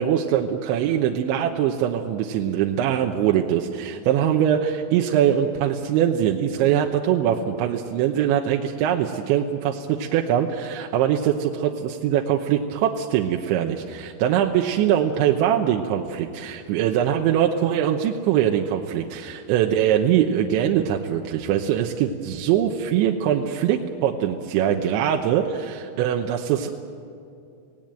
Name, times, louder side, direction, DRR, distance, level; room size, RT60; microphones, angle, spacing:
voice 1, 0.0-26.7, right 10 dB, 75° right, 2 dB, 3.1 m, -22 dB
27.0 x 18.0 x 9.1 m, 2.6 s
omnidirectional pair, 5.8 m